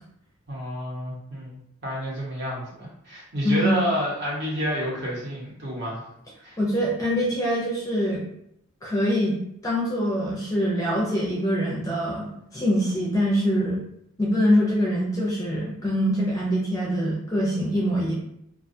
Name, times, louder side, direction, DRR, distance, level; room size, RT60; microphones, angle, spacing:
voice 1, 0.5-6.0 6.4-6.6, equal, 50° right, -6 dB, 0.9 m, -29 dB
voice 2, 3.4-3.8 6.6-8.2 8.8-12.3 12.5-13.8 14.2-18.1, equal, 15° left, -4 dB, 0.5 m, -24 dB
2.3 x 2.3 x 2.6 m, 0.76 s
head